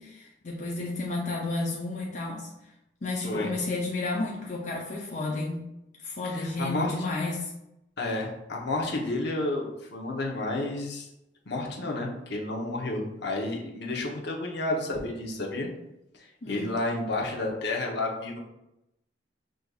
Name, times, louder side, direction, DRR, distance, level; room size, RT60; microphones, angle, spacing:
voice 1, 0.0-2.5 3.0-5.6 6.0-7.5 16.4-16.7, left 2 dB, 40° left, -2 dB, 0.5 m, -32 dB
voice 2, 6.2-6.9 8.0-11.1 11.5-15.7 16.2-18.4, left 2 dB, 70° left, -1 dB, 0.8 m, -31 dB
6.2 x 2.6 x 2.4 m, 0.87 s
head